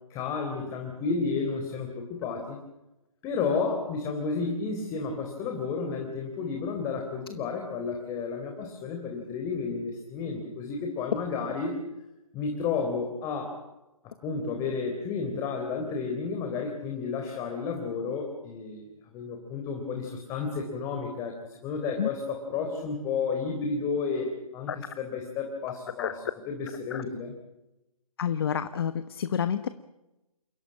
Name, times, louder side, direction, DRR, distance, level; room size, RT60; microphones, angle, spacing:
voice 1, 0.1-2.6 3.2-11.8 12.3-13.6 14.0-18.8 19.1-27.3, left 5 dB, 15° left, 3 dB, 3.7 m, -32 dB
voice 2, 28.2-29.7, left 8 dB, 40° left, 12 dB, 1.3 m, -29 dB
29.0 x 17.0 x 8.9 m, 0.96 s
figure-of-eight pair, 145°, 19 cm